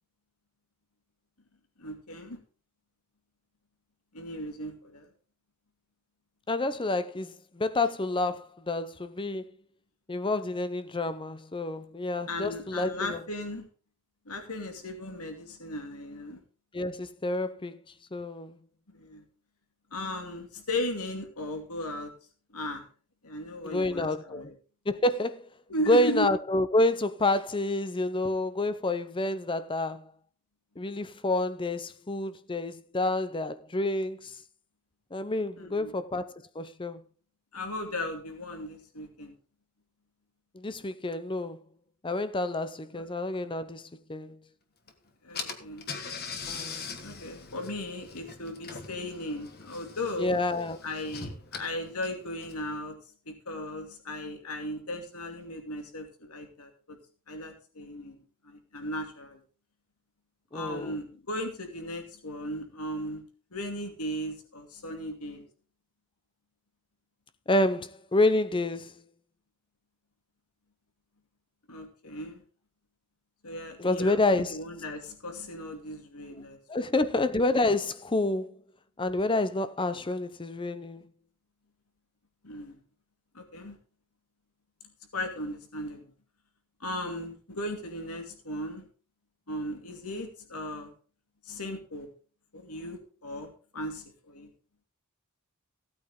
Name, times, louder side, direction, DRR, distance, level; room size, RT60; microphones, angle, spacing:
voice 1, 1.8-2.4 4.1-5.1 12.3-13.7 14.3-16.4 18.9-19.2 19.9-22.1 22.5-22.9 23.2-24.5 25.7-26.3 35.6-35.9 37.5-39.3 42.9-43.0 45.2-45.9 47.0-50.4 50.8-53.0 53.3-57.0 57.3-59.4 60.5-63.2 63.5-65.5 71.7-72.4 73.4-76.6 82.4-82.8 83.3-83.8 85.1-86.1 86.8-88.9 89.5-90.9 91.4-92.1 92.5-94.5, left 1 dB, 85° left, 2.6 m, -36 dB
voice 2, 6.5-9.5 10.1-13.2 16.7-17.8 18.1-18.6 23.6-24.5 24.9-25.5 25.9-30.1 30.8-34.4 35.1-37.0 40.5-41.6 42.0-44.4 46.5-46.9 50.2-50.8 60.5-61.0 67.5-68.9 73.8-74.6 76.3-76.4 76.7-78.6 79.0-81.0, left 2 dB, 25° left, 0.6 m, -28 dB
Car / Engine, 44.9-45.0 45.3-52.8, left 5 dB, 45° left, 1.5 m, -42 dB
16.0 x 8.8 x 3.7 m
head